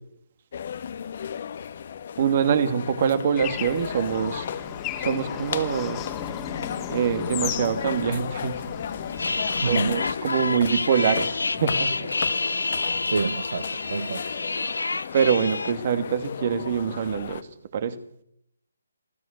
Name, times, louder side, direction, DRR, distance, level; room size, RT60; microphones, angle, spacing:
sound 1, 0.5-17.4, left 8 dB, 45° left, 1.6 m, -35 dB
voice 1, 2.2-4.5 5.0-6.0 6.9-8.5 9.7-12.1 15.1-17.4 17.7-17.9, right 7 dB, 40° right, 10 dB, 2.4 m, -24 dB
Bird / Traffic noise roadway noise, 3.4-10.1, left 9 dB, 20° left, 2.5 m, -35 dB
sound 2, 9.1-15.7, left 3 dB, 80° left, 1.4 m, -28 dB
voice 2, 9.6-10.0 13.0-14.2, right 4 dB, 65° right, 13 dB, 1.2 m, -27 dB
26.5 x 17.5 x 6.8 m, 0.74 s
figure-of-eight pair, 150°, 0 cm